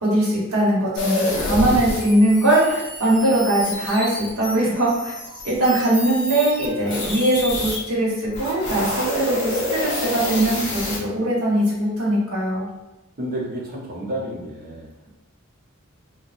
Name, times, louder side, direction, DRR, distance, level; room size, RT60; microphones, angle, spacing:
voice 1, 0.0-5.1 5.4-12.7, right 1 dB, 85° right, -5 dB, 1.1 m, -21 dB
sound 1, 1.0-7.8 8.2-11.0, left 1 dB, 55° left, 0.9 m, -28 dB
voice 2, 13.2-14.9, right 1 dB, 45° right, -4 dB, 0.8 m, -30 dB
4.0 x 2.2 x 2.5 m, 0.98 s
head